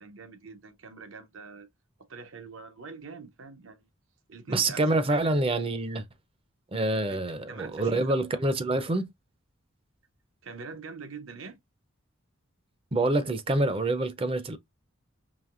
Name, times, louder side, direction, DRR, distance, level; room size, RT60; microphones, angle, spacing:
voice 1, 0.0-1.7 2.1-3.9 4.3-5.3 7.1-8.5 10.4-11.6, right 4 dB, 70° right, 0.8 m, -44 dB
voice 2, 4.5-6.0 6.7-9.1 12.9-14.6, right 2 dB, 30° right, 0.5 m, -26 dB
5.0 x 2.9 x 2.4 m
head